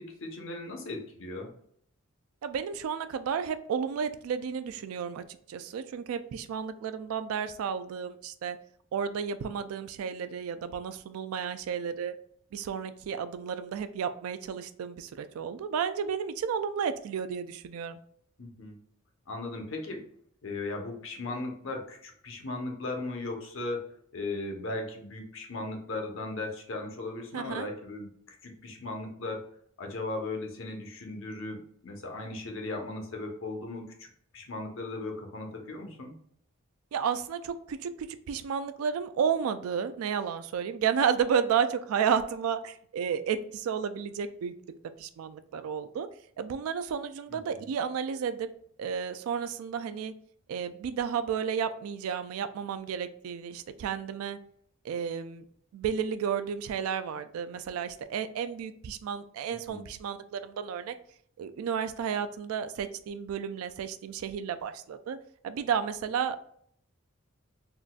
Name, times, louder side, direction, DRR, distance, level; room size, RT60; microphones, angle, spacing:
voice 1, 0.0-1.5 18.4-18.7 19.3-20.0 20.4-23.9 24.1-28.1 28.4-29.4 29.8-34.1 34.3-36.2 47.3-47.6 59.7-59.9, left 2 dB, 70° left, 2 dB, 0.7 m, -37 dB
voice 2, 2.4-8.6 8.9-12.1 12.5-18.0 27.3-27.7 36.9-44.5 45.0-46.1 46.4-48.5 48.8-50.1 50.5-54.4 54.8-55.4 55.7-60.9 61.4-65.2 65.4-66.5, right 7 dB, 90° right, 11 dB, 0.3 m, -32 dB
3.8 x 2.4 x 2.2 m, 0.64 s
head